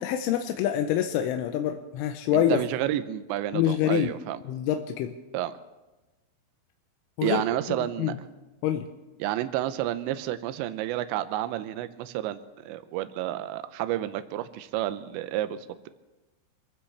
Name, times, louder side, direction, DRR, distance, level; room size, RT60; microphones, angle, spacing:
voice 1, 0.0-2.6 3.5-4.1 4.5-5.2 7.2-7.4 7.7-8.2 8.6-8.9, left 10 dB, 90° left, 5 dB, 3.2 m, -26 dB
voice 2, 2.3-4.4 5.3-5.5 7.2-8.1 9.2-12.4 12.7-15.9, right 13 dB, 80° right, 11 dB, 2.8 m, -30 dB
25.5 x 15.5 x 3.3 m, 1.1 s
omnidirectional pair, 5.6 m